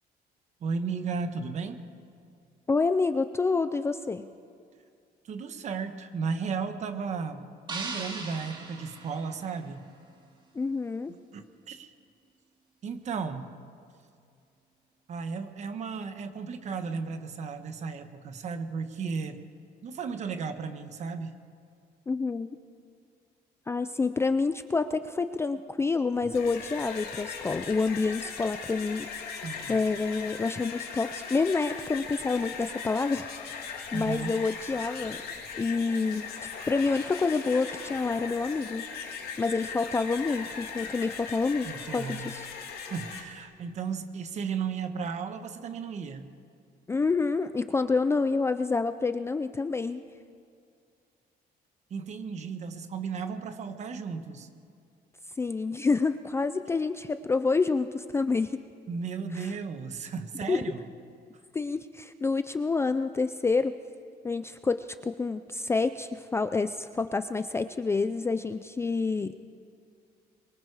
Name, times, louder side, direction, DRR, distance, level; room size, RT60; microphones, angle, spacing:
voice 1, 0.6-1.8 5.2-9.8 11.3-11.9 12.8-13.5 15.1-19.4 19.8-21.4 29.4-29.8 33.9-34.4 41.6-42.3 42.8-46.3 51.9-54.5 58.9-60.9, right 5 dB, 45° right, 8 dB, 1.4 m, -35 dB
voice 2, 2.7-4.3 10.6-11.1 22.1-22.5 23.7-29.1 29.7-33.6 33.9-35.2 35.6-36.3 36.7-38.8 39.4-42.4 46.9-50.0 55.4-58.6 60.5-60.6 61.5-63.8 64.2-69.4, left 4 dB, 15° left, 10 dB, 0.4 m, -28 dB
sound 1, 7.7-10.0, right 3 dB, 30° right, 2.5 m, -39 dB
sound 2, 26.2-43.2, left 6 dB, 65° left, 3.0 m, -39 dB
24.0 x 23.5 x 4.9 m, 2.4 s
cardioid pair, 165°, 17 cm